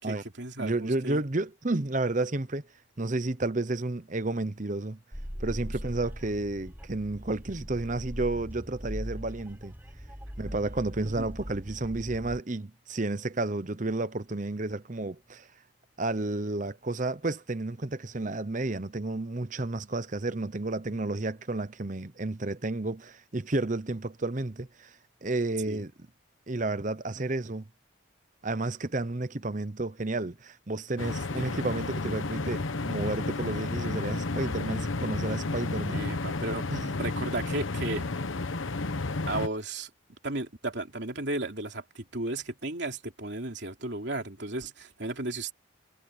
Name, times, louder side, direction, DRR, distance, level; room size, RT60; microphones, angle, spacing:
voice 1, 0.0-1.2 11.0-11.3 25.7-25.8 31.4-31.6 35.9-36.6 36.9-38.0 39.3-39.9 40.2-45.5, right 2 dB, 60° right, 3.3 m, -34 dB
voice 2, 0.6-2.6 3.0-5.0 5.4-9.7 10.4-15.5 16.0-24.9 25.2-25.9 26.5-27.7 28.4-36.0 36.7-36.9, right 2 dB, 40° right, 0.9 m, -31 dB
sound 1, 5.1-12.4, equal, 10° right, 7.5 m, -40 dB
sound 2, 31.0-39.5, left 3 dB, 80° left, 1.1 m, -32 dB
head